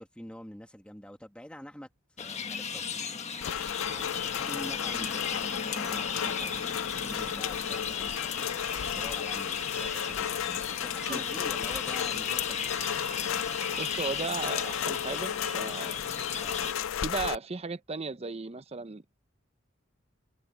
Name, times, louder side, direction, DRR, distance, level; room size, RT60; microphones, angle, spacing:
voice 1, 0.0-1.9 2.2-3.1 3.8-5.6 5.9-8.3 8.9-12.7 16.3-16.7, equal, 5° left, 2.2 m, -46 dB
sound 1, 2.2-16.7, left 6 dB, 35° left, 1.6 m, -35 dB
Rain, 3.4-17.4, left 9 dB, 85° left, 0.4 m, -34 dB
Gull seagull, 6.4-15.5, right 5 dB, 85° right, 1.3 m, -52 dB
voice 2, 13.8-16.0 17.0-19.2, right 4 dB, 30° right, 0.7 m, -36 dB
head